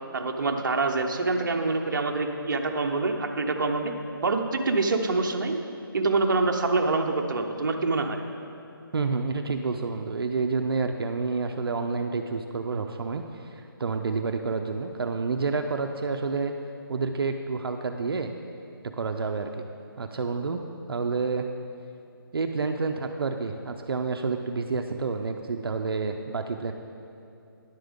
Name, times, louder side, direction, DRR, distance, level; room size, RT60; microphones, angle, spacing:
voice 1, 0.1-3.9 4.2-5.6 5.9-8.2, right 3 dB, 55° right, 3 dB, 0.7 m, -26 dB
voice 2, 8.9-16.5 16.9-18.3 18.9-19.7 20.0-20.6 20.9-21.5 22.3-26.7, right 4 dB, 85° right, 5 dB, 0.5 m, -29 dB
10.5 x 7.6 x 3.6 m, 2.8 s
hypercardioid pair, 175°, 12 cm